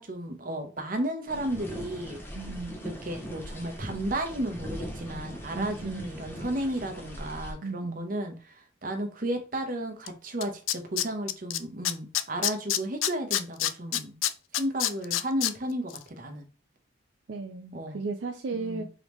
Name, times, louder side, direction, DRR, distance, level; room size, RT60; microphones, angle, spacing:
voice 1, 0.0-2.2 2.8-14.1 14.5-16.5 17.7-18.0 18.5-18.8, right 1 dB, 45° right, 0.8 m, -33 dB
sound 1, 1.3-7.5, equal, 10° left, 0.8 m, -40 dB
voice 2, 2.4-2.8 5.5-6.1 7.6-8.0 17.3-18.8, right 3 dB, 65° right, 0.5 m, -35 dB
Tools, 10.1-10.2 10.4-11.6 11.8-15.5 15.9-16.0, left 12 dB, 85° left, 0.4 m, -26 dB
3.8 x 3.5 x 3.1 m
head